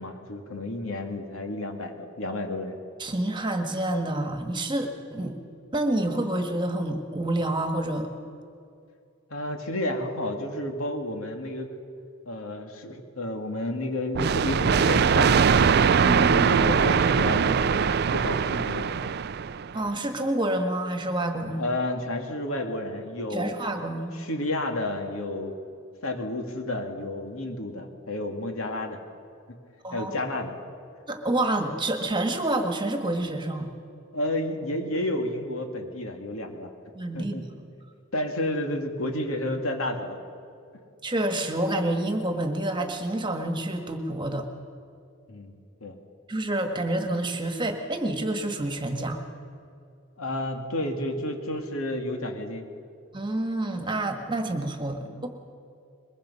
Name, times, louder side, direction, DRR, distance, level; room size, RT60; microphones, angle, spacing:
voice 1, 0.0-2.8 9.3-11.7 12.3-15.7 16.3-17.8 18.1-18.9 21.6-23.5 24.1-25.6 26.0-29.0 29.9-30.5 34.1-36.7 37.1-37.4 38.1-40.2 45.3-46.0 50.2-52.6 55.0-55.2, left 1 dB, 75° left, 4 dB, 2.4 m, -31 dB
voice 2, 3.0-5.4 5.7-8.1 16.0-16.5 19.7-21.6 23.3-24.1 29.8-30.1 31.1-33.7 36.9-37.4 41.0-44.5 46.3-49.2 53.1-55.3, right 1 dB, 20° right, 5 dB, 1.6 m, -28 dB
sound 1, 14.1-19.7, right 6 dB, 50° right, 0.4 m, -21 dB
22.0 x 22.0 x 5.6 m, 2.5 s
head